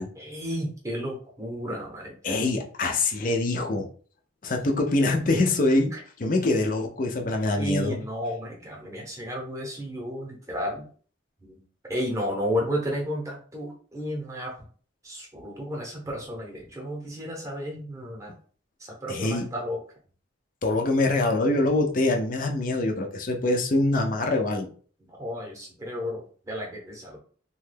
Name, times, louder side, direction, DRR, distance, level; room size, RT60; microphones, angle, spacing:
voice 1, 0.2-2.4 5.9-6.0 7.6-10.8 11.4-11.6 11.9-14.6 15.0-18.3 18.8-19.8 25.0-27.2, equal, 15° right, -1 dB, 0.8 m, -32 dB
voice 2, 2.2-3.9 4.4-8.0 19.1-19.5 20.6-24.7, left 2 dB, 45° left, 3 dB, 0.5 m, -24 dB
3.0 x 2.2 x 3.3 m, 0.44 s
head